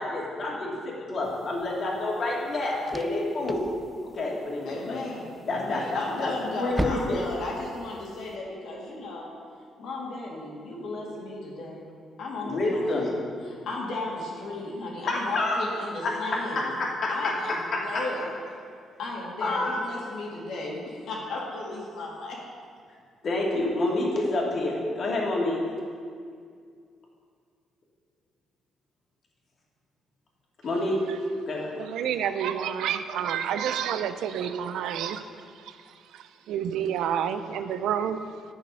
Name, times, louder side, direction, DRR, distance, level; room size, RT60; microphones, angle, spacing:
voice 1, 0.0-3.6 4.1-5.0 5.5-7.2 12.4-13.1 15.1-15.6 16.0-16.1 16.6-18.0 19.4-19.8 23.2-25.6 30.6-31.0 31.5-31.7, left 2 dB, 50° left, -3 dB, 2.4 m, -28 dB
sound 1, 1.2-8.4, right 1 dB, 5° right, 0.5 m, -39 dB
voice 2, 4.6-9.3 9.8-11.8 12.2-13.0 13.5-16.7 17.1-18.3 19.0-22.4, left 2 dB, 75° left, -3 dB, 2.4 m, -35 dB
voice 3, 31.8-38.2, right 9 dB, 85° right, 11 dB, 0.5 m, -29 dB
9.5 x 6.4 x 5.5 m, 2.2 s
cardioid pair, 90°, 0 cm